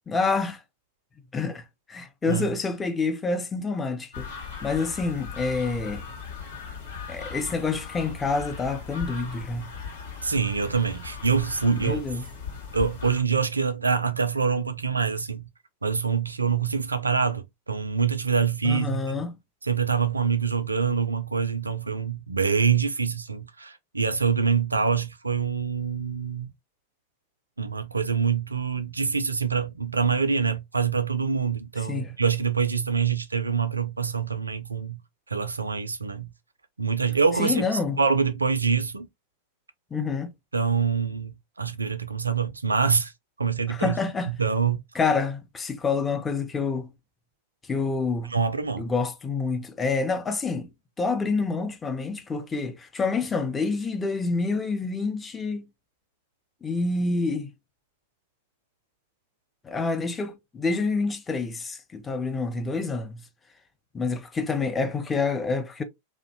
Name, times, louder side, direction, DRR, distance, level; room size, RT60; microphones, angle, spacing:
voice 1, 0.1-0.6 1.3-1.6 1.9-4.3 4.6-6.0 7.1-9.7 11.7-12.3 18.6-19.4 31.9-32.1 37.4-38.0 39.9-40.3 43.7-44.3 44.9-46.9 47.7-48.3 48.8-50.7 51.0-55.6 56.6-57.5 59.6-63.2 63.9-65.8, left 4 dB, 15° left, 0.5 m, -27 dB
sound 1, 4.1-13.2, left 6 dB, 70° left, 0.8 m, -38 dB
voice 2, 10.2-12.0 12.7-15.4 15.8-19.1 19.6-26.5 27.6-35.0 35.3-36.3 36.8-37.7 38.0-39.1 40.5-43.1 43.4-44.0 44.3-44.8 48.3-48.9, right 6 dB, 80° right, 0.3 m, -25 dB
2.5 x 2.1 x 2.5 m
figure-of-eight pair, 90°, 0 cm